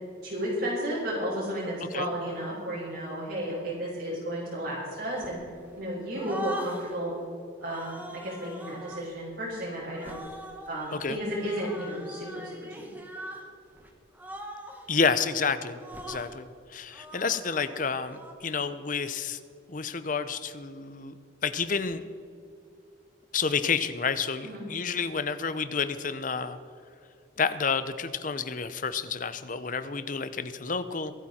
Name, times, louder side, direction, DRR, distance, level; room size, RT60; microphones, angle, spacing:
voice 1, 0.2-5.4 5.8-7.1 7.6-10.2 10.6-12.9 24.4-24.6, equal, 55° right, -8 dB, 4.4 m, -33 dB
sound 1, 5.2-5.8 6.1-7.0 7.6-9.1 9.9-13.5 13.7-13.9 14.1-14.9 15.7-16.3 16.9-18.3, right 1 dB, 10° right, 1.4 m, -42 dB
voice 2, 14.9-15.8 16.1-19.4 19.7-21.1 21.4-22.0 23.3-26.6 27.4-31.1, left 5 dB, 40° left, 12 dB, 0.7 m, -29 dB
24.5 x 8.9 x 4.4 m, 2.5 s
head